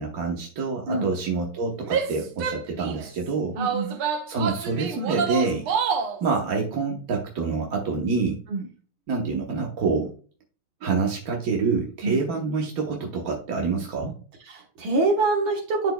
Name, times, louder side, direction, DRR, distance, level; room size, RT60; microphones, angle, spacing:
voice 1, 0.0-3.6 4.3-5.7 6.2-8.4 9.1-10.1 10.8-14.1, right 4 dB, 55° right, 0 dB, 1.2 m, -27 dB
Female speech woman speaking / Yell, 1.8-3.1 3.6-6.2, right 6 dB, 90° right, 1.7 m, -27 dB
voice 2, 3.6-4.0 8.5-8.7 12.0-12.2 14.5-15.9, right 3 dB, 70° right, -1 dB, 2.0 m, -25 dB
11.0 x 4.3 x 2.2 m, 0.40 s
omnidirectional pair, 2.3 m